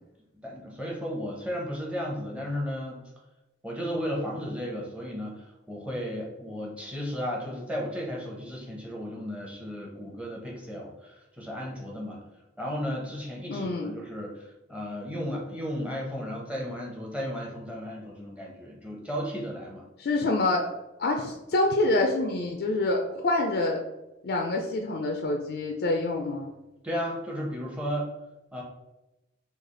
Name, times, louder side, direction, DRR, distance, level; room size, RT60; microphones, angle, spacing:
voice 1, 0.4-3.0 3.6-12.2 12.6-19.9 26.8-28.1 28.5-28.6, equal, 5° right, -3 dB, 0.7 m, -34 dB
voice 2, 13.5-13.9 20.0-20.7 21.0-23.8 24.2-26.5, left 2 dB, 55° left, 2 dB, 0.3 m, -26 dB
3.2 x 2.4 x 3.7 m, 0.96 s
head